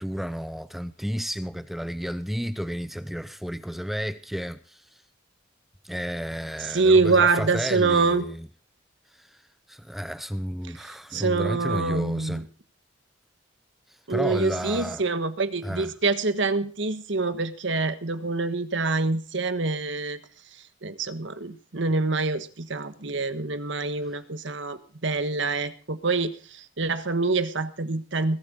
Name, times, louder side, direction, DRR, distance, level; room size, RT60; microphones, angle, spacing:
voice 1, 0.0-5.0 5.8-8.5 9.1-9.4 9.7-12.4 13.9-15.0 15.6-15.9 24.0-24.2, equal, ahead, 0.6 m, -32 dB
voice 2, 6.7-8.3 11.1-12.4 14.1-20.2 20.8-26.3 26.8-28.4, right 3 dB, 65° right, 1.4 m, -25 dB
21.0 x 8.6 x 5.2 m
head